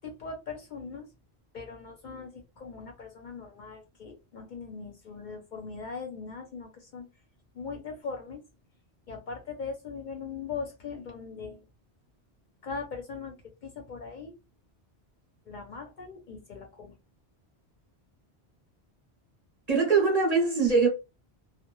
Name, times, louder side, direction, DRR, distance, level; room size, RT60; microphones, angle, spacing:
voice 1, 0.0-1.1 1.5-7.1 7.5-8.4 9.1-11.7 12.6-13.3 13.6-14.3 15.5-16.9, left 5 dB, 55° left, 0.6 m, -40 dB
voice 2, 19.7-20.9, right 4 dB, 45° right, 0.6 m, -22 dB
2.1 x 2.0 x 3.0 m
omnidirectional pair, 1.1 m